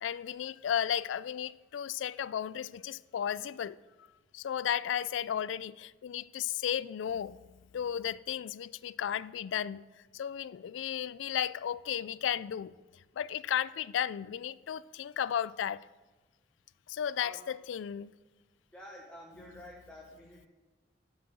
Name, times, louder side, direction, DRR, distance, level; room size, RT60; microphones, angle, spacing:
voice 1, 0.0-3.8 4.3-7.4 7.7-9.8 10.1-12.7 13.2-15.8 16.9-18.1 19.5-19.6, left 9 dB, 85° left, 0.3 m, -34 dB
voice 2, 18.7-20.5, left 1 dB, 5° left, 1.2 m, -49 dB
9.7 x 5.6 x 7.8 m
head